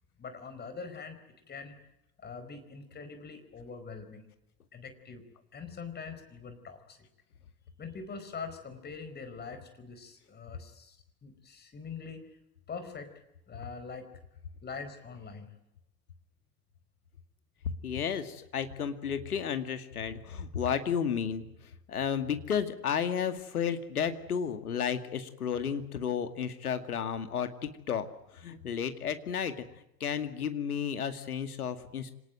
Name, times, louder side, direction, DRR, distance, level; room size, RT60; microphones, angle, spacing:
voice 1, 0.2-1.9 2.2-4.3 4.7-5.2 5.5-7.0 7.8-12.4 12.7-13.1 13.5-14.1 14.6-15.5, left 5 dB, 20° left, 9 dB, 4.7 m, -43 dB
voice 2, 17.8-21.5 21.9-28.1 28.3-29.7 30.0-32.1, left 7 dB, 70° left, 9 dB, 2.3 m, -32 dB
26.5 x 19.0 x 9.2 m, 0.85 s
figure-of-eight pair, 85°, 46 cm